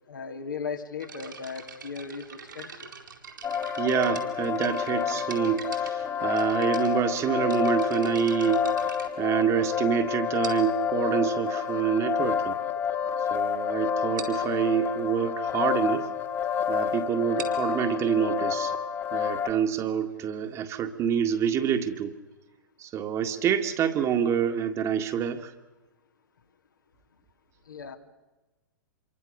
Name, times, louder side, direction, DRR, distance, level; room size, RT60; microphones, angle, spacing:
voice 1, 0.1-2.9 6.4-6.5 27.7-28.0, left 5 dB, 75° left, 4 dB, 2.7 m, -37 dB
sound 1, 1.0-9.8 10.4-10.9 11.7-11.8 12.4-12.5 12.8-13.0 13.3-13.4 13.7-13.8 14.2-14.5 17.1-20.6, right 6 dB, 75° right, 4.5 m, -44 dB
sound 2, 3.4-19.5, left 8 dB, 25° left, 1.9 m, -29 dB
voice 2, 3.8-8.7 9.2-12.6 13.3-16.1 16.7-18.7 19.1-22.1 22.8-25.5, right 8 dB, 30° right, 6 dB, 2.0 m, -27 dB
27.0 x 23.5 x 6.6 m, 1.1 s
figure-of-eight pair, 105°, 11 cm